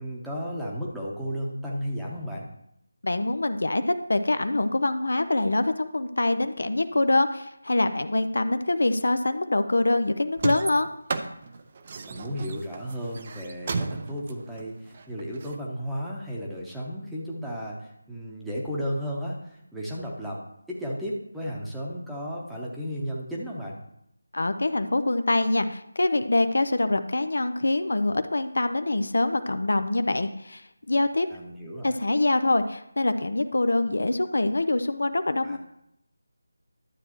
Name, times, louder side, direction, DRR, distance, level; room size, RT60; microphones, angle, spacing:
voice 1, 0.0-2.5 12.1-20.4 20.7-23.8 31.3-32.0 35.4-35.6, equal, ahead, -6 dB, 0.9 m, -34 dB
voice 2, 3.0-3.8 4.1-10.9 24.3-31.3 31.8-35.6, left 2 dB, 60° left, 10 dB, 0.6 m, -24 dB
sound 1, 10.4-15.6, right 4 dB, 30° right, 0.5 m, -33 dB
12.0 x 7.7 x 3.0 m, 0.77 s
figure-of-eight pair, 160°, 0 cm